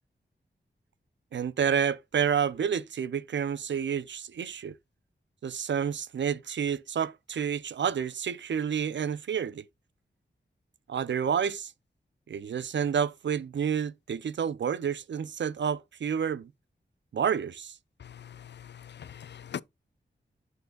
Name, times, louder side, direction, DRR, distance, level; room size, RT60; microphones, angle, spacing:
voice 1, 1.3-4.7 5.4-9.6 10.9-11.7 12.3-16.5 17.1-17.7, right 7 dB, 70° right, 0.5 m, -29 dB
voice 2, 18.0-19.6, left 8 dB, 65° left, 0.4 m, -42 dB
9.3 x 6.6 x 2.3 m
wide cardioid pair, 100°, 19 cm